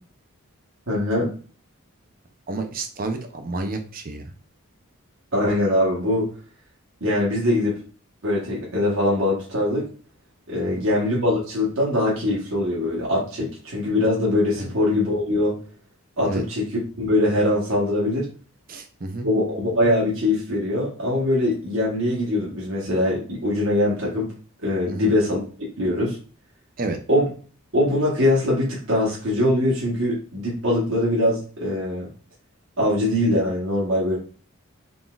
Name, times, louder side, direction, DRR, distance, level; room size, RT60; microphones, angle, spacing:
voice 1, 0.9-1.3 5.3-6.3 7.0-7.8 8.2-9.9 10.5-15.6 16.2-18.3 19.2-24.3 24.6-25.4 25.8-26.2 27.1-27.3 27.7-32.1 32.8-34.2, left 1 dB, 65° right, -4 dB, 1.3 m, -22 dB
voice 2, 2.5-4.2 14.6-14.7 16.3-16.4 18.7-19.3 24.9-25.1 26.8-27.0, right 2 dB, 40° right, 6 dB, 0.6 m, -30 dB
3.9 x 3.6 x 2.4 m, 0.40 s
head